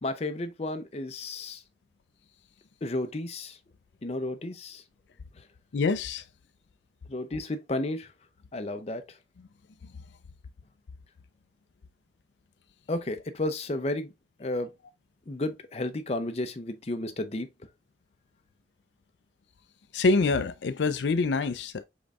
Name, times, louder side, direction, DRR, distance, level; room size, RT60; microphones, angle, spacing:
voice 1, 0.0-1.6 2.8-3.6 4.0-4.8 5.3-5.5 7.1-8.1 8.5-9.2 12.9-14.1 14.4-14.7 15.3-17.5, left 2 dB, 35° left, 0.5 m, -32 dB
voice 2, 5.7-6.2 19.9-21.8, left 3 dB, 80° left, 0.4 m, -25 dB
5.3 x 3.9 x 2.4 m
head